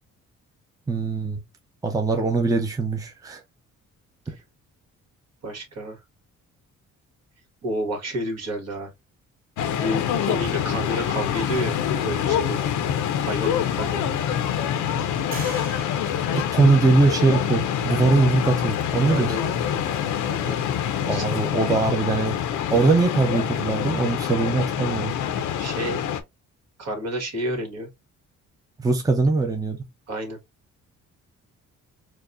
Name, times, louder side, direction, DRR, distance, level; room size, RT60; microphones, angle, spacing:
voice 1, 0.9-1.4 1.8-3.4 4.3-4.4 16.3-19.4 21.1-22.4 22.7-25.1 28.8-29.9, right 3 dB, 10° right, 0.6 m, -21 dB
voice 2, 5.4-6.0 7.6-8.9 9.8-12.7 13.2-14.2 19.0-19.9 20.3-20.7 21.0-21.4 25.6-26.0 26.8-27.9 30.1-30.4, right 1 dB, 55° right, 1.8 m, -31 dB
sound 1, 9.6-26.2, left 9 dB, 85° left, 0.7 m, -26 dB
sound 2, 15.3-17.3, right 2 dB, 30° right, 1.9 m, -42 dB
4.5 x 2.3 x 2.6 m
cardioid pair, 90°, 30 cm